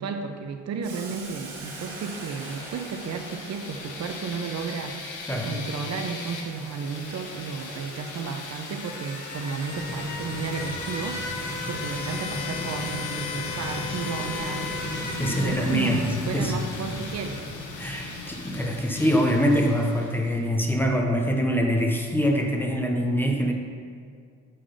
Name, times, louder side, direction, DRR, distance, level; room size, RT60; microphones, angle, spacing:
voice 1, 0.0-14.7 15.4-17.4, right 5 dB, 60° right, 5 dB, 0.6 m, -33 dB
Boiling, 0.8-8.6, right 2 dB, 85° right, 1.6 m, -44 dB
sound 1, 1.8-20.4, left 4 dB, 80° left, 1.0 m, -37 dB
sound 2, 9.7-18.9, left 1 dB, 45° left, 1.4 m, -36 dB
voice 2, 15.2-16.0 16.3-16.5 17.8-23.5, equal, 5° left, 1 dB, 0.7 m, -24 dB
6.8 x 3.7 x 4.9 m, 2.1 s
cardioid pair, 90°, 30 cm